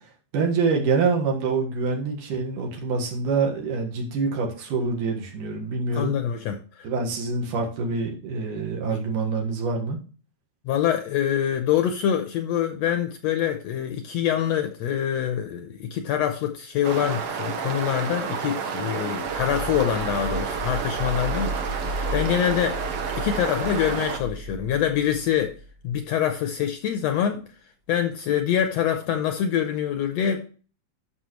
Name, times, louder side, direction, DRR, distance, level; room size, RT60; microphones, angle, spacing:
voice 1, 0.3-6.2 6.8-10.0, right 4 dB, 75° right, 1 dB, 3.2 m, -26 dB
voice 2, 5.9-6.6 10.6-22.8 23.1-25.6 25.8-27.5 27.9-30.5, left 9 dB, 75° left, 6 dB, 1.7 m, -25 dB
sound 1, 16.8-24.2, right 6 dB, 60° right, 1.7 m, -30 dB
sound 2, 19.3-26.0, right 1 dB, 40° right, 1.9 m, -34 dB
13.0 x 6.1 x 3.1 m, 0.39 s
omnidirectional pair, 3.6 m